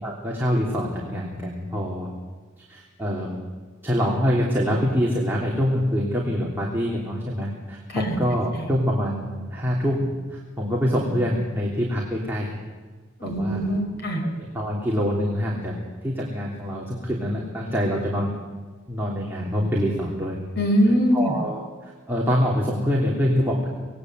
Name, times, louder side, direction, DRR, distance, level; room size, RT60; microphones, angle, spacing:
voice 1, 0.0-2.1 2.7-3.3 3.8-12.5 13.2-13.7 14.2-15.7 16.0-18.3 18.9-20.4 21.1-23.7, equal, 10° right, -4 dB, 3.3 m, -25 dB
voice 2, 13.2-14.2 20.6-21.4, equal, 55° left, 3 dB, 5.4 m, -22 dB
26.0 x 19.5 x 8.1 m, 1.4 s
head